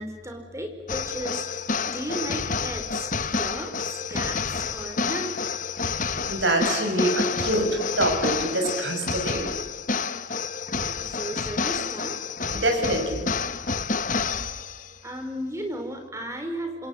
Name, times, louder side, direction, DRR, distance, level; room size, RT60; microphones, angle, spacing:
voice 1, 0.0-1.4 1.9-3.1 3.4-5.4 10.7-12.2 15.0-16.9, right 1 dB, 15° right, 5 dB, 4.6 m, -35 dB
sound 1, 0.9-15.0, left 5 dB, 40° left, 1.0 m, -29 dB
voice 2, 6.3-9.5 12.5-13.3, right 1 dB, 65° right, 3 dB, 7.2 m, -25 dB
27.5 x 26.0 x 7.8 m, 1.3 s
head